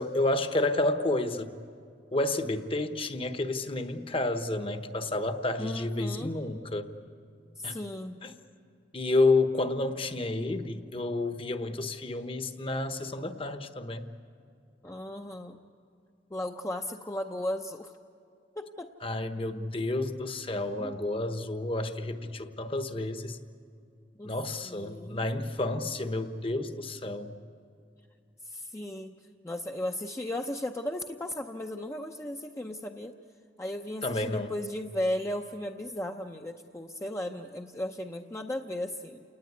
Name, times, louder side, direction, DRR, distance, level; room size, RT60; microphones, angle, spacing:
voice 1, 0.0-1.5 2.1-6.9 7.6-7.8 8.2-8.3 8.9-14.1 19.0-23.4 24.2-27.3 34.0-34.5, left 2 dB, 30° left, 9 dB, 1.1 m, -30 dB
voice 2, 5.6-6.3 7.6-8.2 14.8-15.6 16.3-17.9 18.6-18.9 20.8-20.9 24.2-24.3 24.6-25.3 28.4-29.2 29.4-33.1 33.6-39.2, left 1 dB, 15° left, 3 dB, 0.7 m, -35 dB
28.5 x 19.5 x 9.6 m, 2.4 s
head